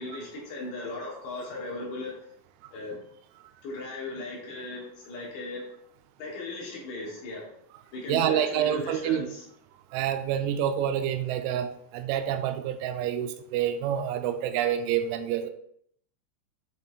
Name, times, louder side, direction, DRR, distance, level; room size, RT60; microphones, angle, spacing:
voice 1, 0.0-2.2 2.7-3.0 3.6-5.7 6.2-7.5 7.9-9.4, left 2 dB, 65° left, -3 dB, 3.1 m, -37 dB
voice 2, 8.1-9.3 9.9-15.5, right 10 dB, 85° right, 9 dB, 3.0 m, -27 dB
7.8 x 5.4 x 2.6 m, 0.68 s
omnidirectional pair, 5.4 m